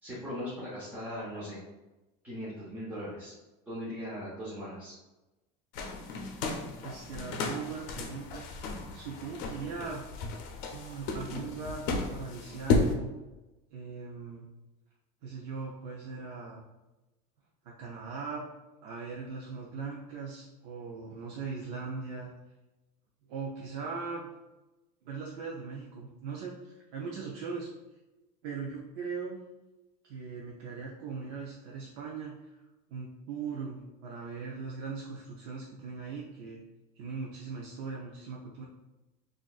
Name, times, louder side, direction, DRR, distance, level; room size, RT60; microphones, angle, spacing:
voice 1, 0.0-1.6 2.2-3.3 3.7-4.9, equal, 10° right, -9 dB, 0.8 m, -39 dB
sound 1, 5.7-12.9, left 3 dB, 70° left, 0.6 m, -33 dB
voice 2, 6.8-8.5 8.9-10.0 10.7-13.1 13.7-14.5 15.2-16.6 17.6-18.4 18.8-22.3 23.3-24.3 25.0-27.7 28.4-29.4 30.0-32.5 32.9-36.6 36.9-38.6, right 5 dB, 70° right, -3 dB, 0.6 m, -39 dB
3.9 x 2.5 x 2.4 m, 1.0 s
cardioid pair, 150°, 21 cm